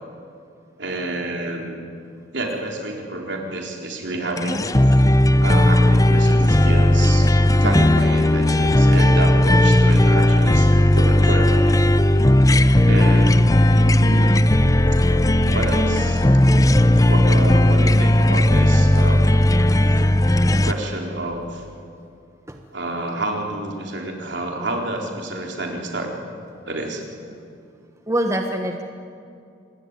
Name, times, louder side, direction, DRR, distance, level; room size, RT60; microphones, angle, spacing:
voice 1, 0.8-1.8 2.3-5.0 5.4-7.3 7.6-11.8 12.8-13.6 14.0-14.3 15.5-16.3 17.1-19.2 20.6-21.6 22.7-26.1 26.7-27.0, right 2 dB, 65° right, 1 dB, 4.1 m, -29 dB
sound 1, 4.4-20.7, left 1 dB, 20° left, 0.7 m, -16 dB
voice 2, 7.6-8.0 22.5-22.6 28.1-28.8, right 1 dB, 15° right, 4 dB, 1.3 m, -24 dB
26.5 x 21.5 x 9.7 m, 2.4 s
head